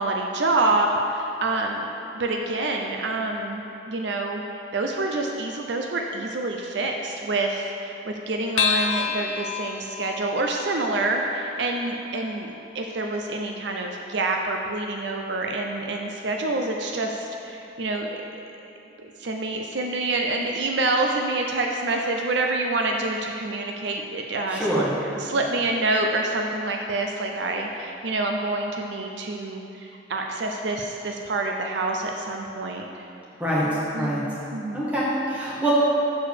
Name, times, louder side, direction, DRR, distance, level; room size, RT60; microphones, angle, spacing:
voice 1, 0.0-18.2 19.0-33.1 33.6-34.9, right 2 dB, 70° right, 2 dB, 0.5 m, -27 dB
sound 1, 8.6-13.3, left 6 dB, 90° left, 0.4 m, -31 dB
voice 2, 24.5-24.9 33.4-33.7 34.0-34.2 34.7-35.7, right 1 dB, 10° right, -8 dB, 1.6 m, -25 dB
6.8 x 4.7 x 6.6 m, 2.8 s
head